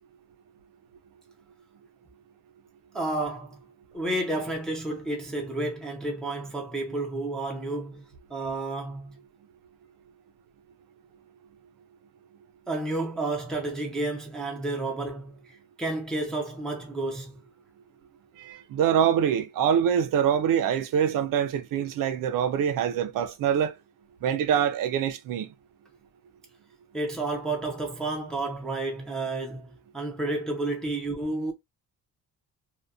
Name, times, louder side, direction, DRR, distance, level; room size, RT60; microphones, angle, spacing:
voice 1, 2.9-3.6 3.9-8.0 8.3-9.1 12.7-15.4 15.8-17.4 26.9-31.5, right 2 dB, ahead, 0.3 m, -31 dB
voice 2, 18.4-23.7 24.2-25.5, right 8 dB, 60° right, 0.4 m, -25 dB
2.6 x 2.1 x 2.3 m
cardioid pair, 180°, 37 cm